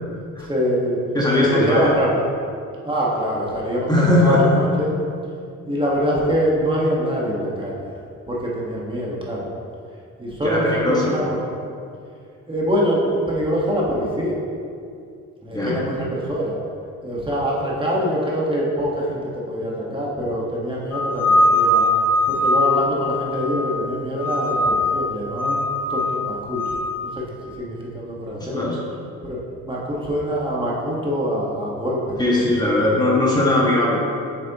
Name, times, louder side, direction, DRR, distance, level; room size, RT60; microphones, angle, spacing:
voice 1, 0.4-1.0 1.4-2.1 2.8-3.9 4.2-4.9 5.6-7.7 8.3-9.5 10.2-11.4 12.5-14.4 15.4-16.6 17.0-21.9 22.3-25.6 25.9-26.7 27.0-27.2 27.6-28.6 29.2-29.4 29.6-32.7, equal, 15° right, -5 dB, 1.5 m, -24 dB
voice 2, 1.1-1.9 3.9-4.6 10.4-11.1 15.5-15.8 28.3-28.8 32.2-34.0, left 1 dB, 15° left, -5 dB, 1.4 m, -19 dB
sound 1, 20.9-23.8 24.2-25.0 25.3-26.9, left 1 dB, 55° left, 1.1 m, -21 dB
7.5 x 6.7 x 3.0 m, 2.4 s
cardioid pair, 90°, 30 cm